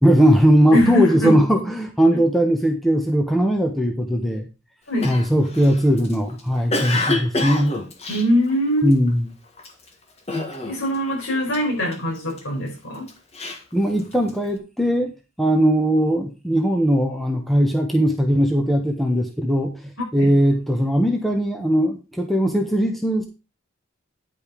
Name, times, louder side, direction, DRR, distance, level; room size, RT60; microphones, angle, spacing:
voice 1, 0.0-4.5 5.0-7.8 8.8-9.3 13.7-15.1 15.4-23.3, equal, ahead, 1.2 m, -19 dB
voice 2, 0.7-1.4 4.9-5.1 8.1-8.9 10.3-13.1 20.0-20.3, left 1 dB, 75° left, 5.5 m, -22 dB
Cough, 5.0-9.1 9.6-9.9 10.3-11.0 11.2-12.4 12.9-14.5, left 2 dB, 30° left, 1.5 m, -28 dB
10.0 x 5.4 x 5.2 m
head